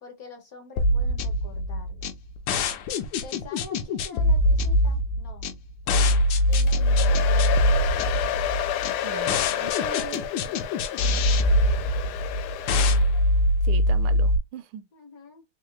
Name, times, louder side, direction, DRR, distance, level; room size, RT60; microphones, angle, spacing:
voice 1, 0.0-2.1 3.2-5.5 5.8-6.1 6.5-8.3 10.1-11.9 14.9-15.4, left 3 dB, 55° left, 1.1 m, -47 dB
sound 1, 0.8-14.4, left 1 dB, 75° left, 1.2 m, -23 dB
Domestic sounds home sounds, 6.5-13.2, left 12 dB, 90° left, 1.5 m, -30 dB
voice 2, 9.0-10.2 13.6-14.8, right 8 dB, 80° right, 1.3 m, -38 dB
3.8 x 2.7 x 3.2 m
omnidirectional pair, 2.3 m